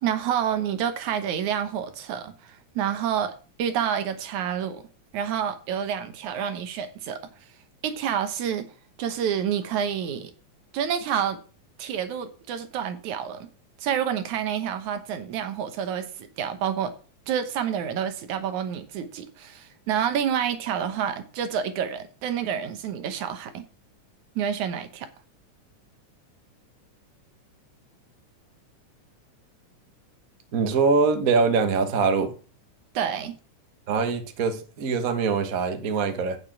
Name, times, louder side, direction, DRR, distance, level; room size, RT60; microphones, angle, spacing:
voice 1, 0.0-3.3 3.6-4.8 5.1-7.2 7.8-8.7 9.0-10.3 10.7-11.4 11.8-13.5 13.8-16.9 17.3-23.6 24.4-25.1 32.9-33.4, right 8 dB, 75° right, 2.4 m, -28 dB
voice 2, 30.5-32.3 33.9-36.4, right 5 dB, 45° right, 1.1 m, -23 dB
8.9 x 6.6 x 6.0 m
omnidirectional pair, 3.5 m